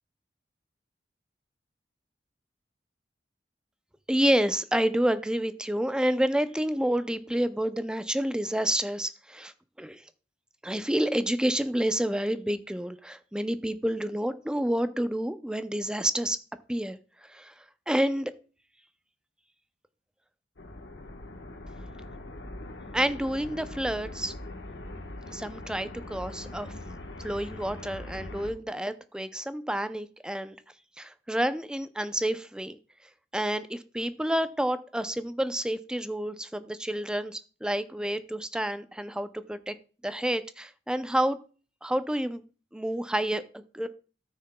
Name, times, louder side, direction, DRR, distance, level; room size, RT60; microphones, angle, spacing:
voice 1, 4.1-9.5 9.8-10.0 10.6-16.4 16.7-17.0 17.3-17.5 17.9-18.3 22.9-24.3 25.3-26.7 27.2-30.6 31.0-32.8 33.3-39.7 40.0-41.4 41.8-42.4 42.7-43.9, right 1 dB, 5° right, 11 dB, 0.4 m, -29 dB
sound 1, 20.6-28.5, left 1 dB, 75° left, 1.2 m, -41 dB
13.5 x 6.5 x 2.2 m, 0.36 s
head